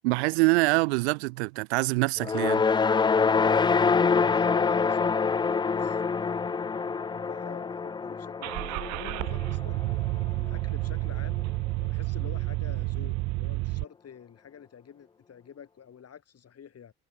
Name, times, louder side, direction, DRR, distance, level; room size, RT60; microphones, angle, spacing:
voice 1, 0.0-2.6, right 26 dB, 80° right, 1.2 m, -25 dB
sound 1, 2.2-10.6, left 5 dB, 15° left, 0.4 m, -26 dB
voice 2, 3.7-11.4 11.8-16.9, left 8 dB, 50° left, 6.2 m, -47 dB
Car / Engine starting, 8.4-13.8, right 23 dB, 60° right, 0.5 m, -30 dB
hypercardioid pair, 50°, 33 cm